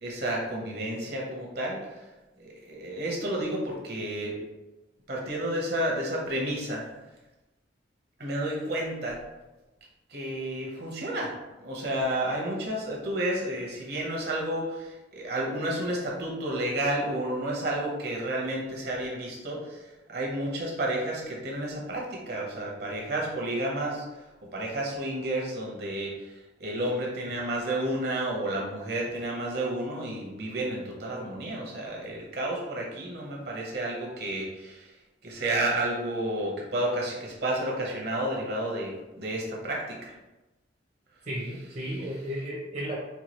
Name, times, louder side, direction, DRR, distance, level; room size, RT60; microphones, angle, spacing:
voice 1, 0.0-1.8 2.4-4.4 5.1-6.8 8.2-9.2 10.1-11.3 11.6-19.8 20.1-24.0 24.5-34.9 35.2-40.1, right 1 dB, 55° right, -2 dB, 1.0 m, -31 dB
voice 2, 41.3-43.0, equal, 40° right, -6 dB, 0.6 m, -34 dB
4.4 x 2.3 x 3.0 m, 1.0 s
head